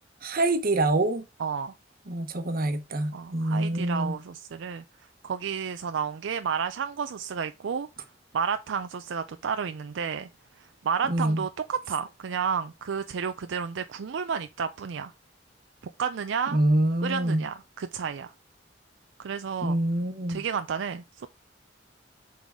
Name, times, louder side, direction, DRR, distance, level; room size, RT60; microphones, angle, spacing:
voice 1, 0.2-1.2 2.1-4.2 11.1-11.4 16.5-17.4 19.6-20.4, right 1 dB, 50° right, 1.0 m, -25 dB
voice 2, 1.4-1.7 3.1-4.8 5.2-7.9 8.3-10.3 10.6-15.1 16.0-16.6 17.0-18.3 19.2-19.8 20.3-21.3, right 6 dB, 75° right, 0.4 m, -31 dB
7.1 x 3.8 x 3.6 m
head